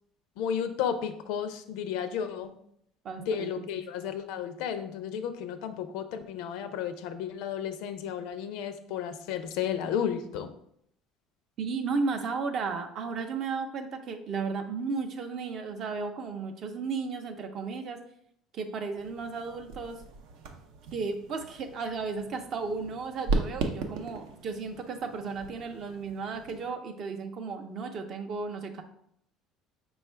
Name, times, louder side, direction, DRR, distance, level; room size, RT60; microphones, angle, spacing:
voice 1, 0.4-2.5 3.3-10.5, left 8 dB, 75° left, 10 dB, 0.5 m, -33 dB
voice 2, 3.0-3.7 11.6-18.0 18.5-20.0 20.9-28.8, right 4 dB, 40° right, 6 dB, 0.5 m, -34 dB
sound 1, 19.0-26.7, right 3 dB, 80° right, 0.6 m, -37 dB
5.2 x 2.3 x 4.3 m, 0.71 s
cardioid pair, 165°, 0 cm